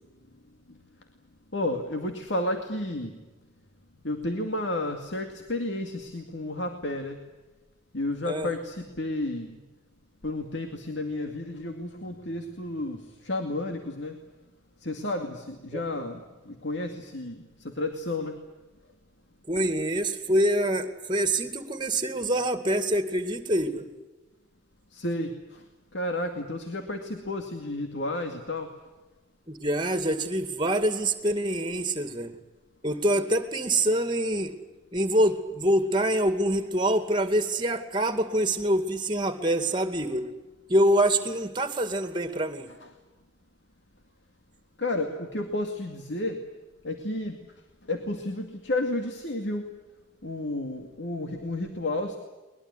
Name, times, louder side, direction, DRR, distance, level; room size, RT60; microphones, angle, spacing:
voice 1, 1.5-3.1 4.0-7.2 7.9-9.5 10.2-14.2 14.8-18.3 24.9-25.3 25.9-28.7 42.8-42.9 44.8-46.4 46.8-47.4 47.9-49.7 50.2-52.2, left 1 dB, 70° left, 4 dB, 2.3 m, -31 dB
voice 2, 15.7-16.0 19.5-23.9 29.5-32.4 32.8-34.5 34.9-40.3 40.7-42.7, right 1 dB, 25° right, 9 dB, 2.3 m, -25 dB
22.0 x 21.5 x 9.8 m, 1.1 s
head